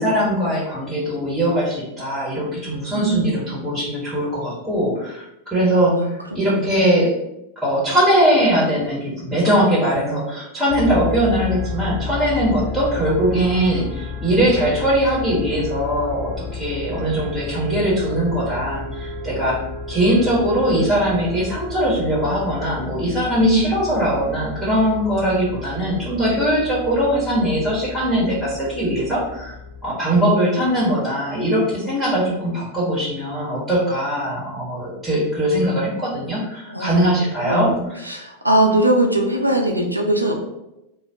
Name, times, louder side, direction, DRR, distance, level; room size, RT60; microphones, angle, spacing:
voice 1, 0.0-6.1 6.3-7.1 7.6-19.6 19.9-29.5 29.8-37.7, equal, 5° right, -8 dB, 1.1 m, -20 dB
voice 2, 2.9-3.4 5.9-6.7 23.4-23.6 36.7-37.0 37.5-40.3, right 1 dB, 85° right, 1 dB, 0.4 m, -21 dB
sound 1, 10.7-29.8, left 4 dB, 35° left, 0.6 m, -32 dB
2.4 x 2.2 x 3.4 m, 0.89 s
figure-of-eight pair, 90°, 0 cm